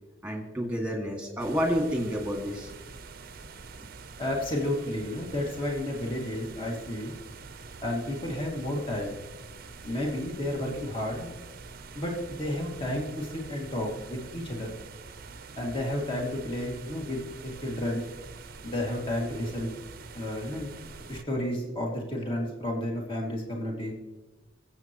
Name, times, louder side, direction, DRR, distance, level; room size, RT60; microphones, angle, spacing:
voice 1, 0.2-2.7, equal, 5° right, 1 dB, 2.2 m, -29 dB
sound 1, 1.4-21.2, right 4 dB, 50° right, 0.7 m, -46 dB
voice 2, 4.2-7.1 7.8-9.2 9.8-11.3 11.9-14.7 15.6-18.0 18.6-19.7 20.1-20.7 21.1-23.9, left 1 dB, 25° left, -1 dB, 2.4 m, -32 dB
23.0 x 8.1 x 3.1 m, 1.2 s
head